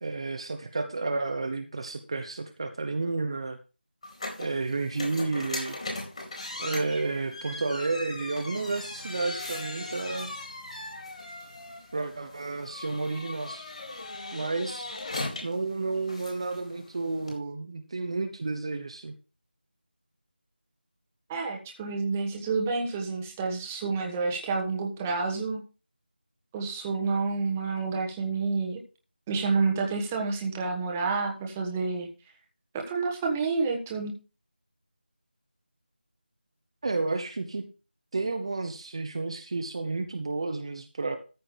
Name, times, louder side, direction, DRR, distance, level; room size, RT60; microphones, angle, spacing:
voice 1, 0.0-3.6 4.4-5.8 6.6-10.3 11.9-13.7 14.3-14.9 15.4-19.1 36.8-37.6 38.1-41.2, right 3 dB, 30° right, 6 dB, 1.0 m, -31 dB
sound 1, 4.0-17.4, left 2 dB, 40° left, 4.3 m, -39 dB
voice 2, 21.3-25.6 26.5-28.8 29.3-32.1 32.9-34.1, right 4 dB, 10° right, 1 dB, 1.3 m, -29 dB
14.0 x 6.2 x 4.8 m, 0.32 s
figure-of-eight pair, 170°, 6 cm